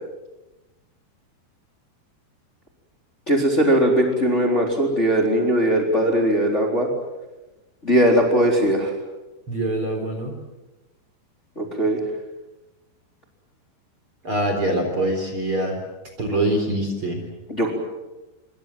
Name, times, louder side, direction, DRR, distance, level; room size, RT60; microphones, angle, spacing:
voice 1, 3.3-6.9 7.8-8.9 11.6-12.0 17.5-17.7, equal, 15° left, 1 dB, 3.7 m, -19 dB
voice 2, 9.5-10.3 14.2-15.8 16.2-17.2, right 1 dB, 30° right, 4 dB, 4.2 m, -24 dB
27.0 x 24.0 x 7.7 m, 1.1 s
omnidirectional pair, 5.1 m